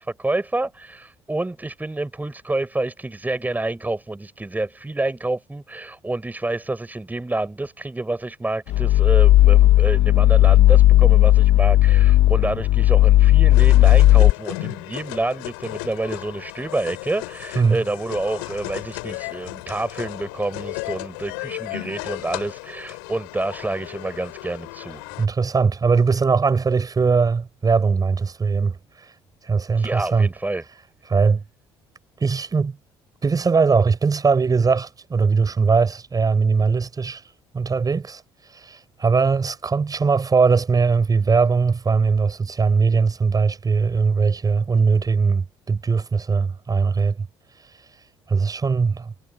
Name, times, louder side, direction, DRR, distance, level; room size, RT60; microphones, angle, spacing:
voice 1, 0.0-25.0 29.8-30.6, right 2 dB, 15° right, 6.2 m, -28 dB
sound 1, 8.7-14.3, left 15 dB, 70° left, 1.1 m, -14 dB
sound 2, 13.5-25.3, left 30 dB, 85° left, 8.0 m, -35 dB
voice 2, 25.2-29.1 29.4-30.3 31.1-31.4 32.2-32.8 33.2-37.2 37.5-38.2 38.5-47.3 48.3-49.1, right 5 dB, 35° right, 7.9 m, -20 dB
hypercardioid pair, 65°, 11 cm